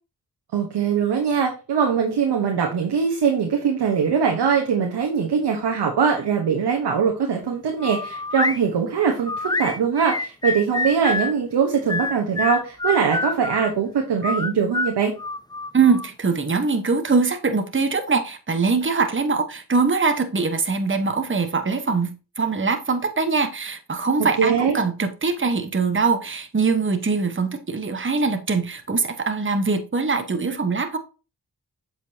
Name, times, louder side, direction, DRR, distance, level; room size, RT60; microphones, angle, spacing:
voice 1, 0.5-15.1 24.4-24.8, right 6 dB, 85° right, 1.2 m, -22 dB
sound 1, 7.8-8.6 9.3-11.3 11.9-13.7 14.2-16.1, left 3 dB, 10° left, 0.4 m, -26 dB
voice 2, 15.7-31.0, right 4 dB, 30° right, 1.2 m, -22 dB
7.4 x 5.2 x 2.8 m
cardioid pair, 45°, 40 cm